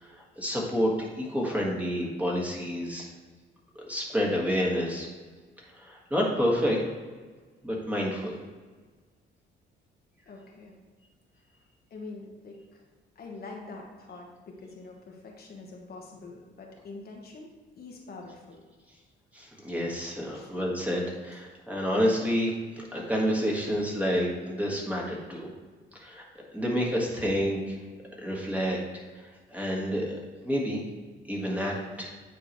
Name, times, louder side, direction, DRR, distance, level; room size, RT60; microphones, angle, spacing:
voice 1, 0.0-3.1 3.7-5.1 5.7-6.8 7.6-8.4 19.3-25.5 25.9-26.2 26.5-27.8 28.2-28.8 29.1-30.8 31.3-32.1, equal, 5° right, -2 dB, 1.6 m, -29 dB
voice 2, 10.3-10.8 11.9-12.8 13.1-17.5 17.7-18.6 20.3-20.5, left 3 dB, 50° left, 0 dB, 1.2 m, -45 dB
9.3 x 3.8 x 3.1 m, 1.4 s
cardioid pair, 90°, 20 cm